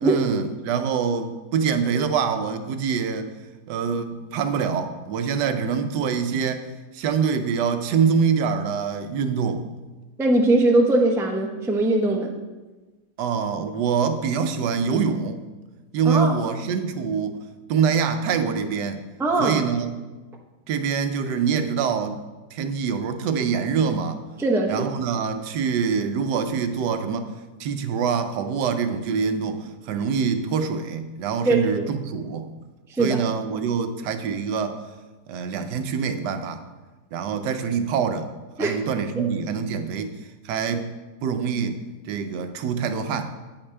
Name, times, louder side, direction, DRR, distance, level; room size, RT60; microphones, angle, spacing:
voice 1, 0.0-3.3 3.7-6.7 6.9-9.6 13.2-15.4 15.9-17.4 17.7-19.0 19.4-19.9 20.7-22.2 22.5-24.2 24.7-27.3 27.6-32.5 33.0-34.7 35.3-36.6 37.1-38.3 38.6-40.1 40.4-40.9 41.2-41.8 42.1-43.3, right 6 dB, 90° right, 8 dB, 1.3 m, -25 dB
voice 2, 10.2-12.3 16.0-16.4 19.2-19.6 24.4-24.9 31.4-31.9 32.9-33.3 38.6-38.8 39.2-39.3, right 2 dB, 5° right, 1 dB, 0.4 m, -21 dB
8.7 x 8.6 x 3.3 m, 1.2 s
omnidirectional pair, 1.8 m